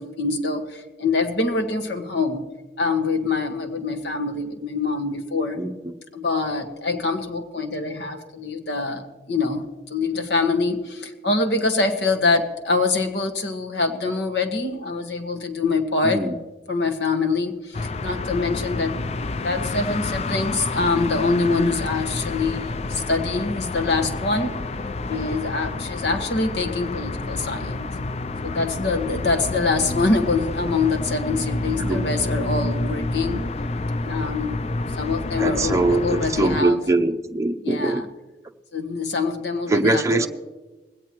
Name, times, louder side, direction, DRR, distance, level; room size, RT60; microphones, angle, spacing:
voice 1, 0.0-2.5 2.8-5.6 6.1-16.3 16.7-19.0 19.4-24.5 25.1-27.9 28.4-33.5 34.0-34.6 35.0-36.8 37.6-38.0 38.7-40.3, left 3 dB, 80° left, 6 dB, 1.6 m, -24 dB
voice 2, 16.0-16.4 31.8-32.0 35.4-38.0 39.7-40.3, right 2 dB, 15° right, 5 dB, 0.6 m, -22 dB
sound 1, 17.7-36.6, left 2 dB, 35° left, 0.4 m, -29 dB
20.0 x 17.0 x 3.1 m, 1.1 s
head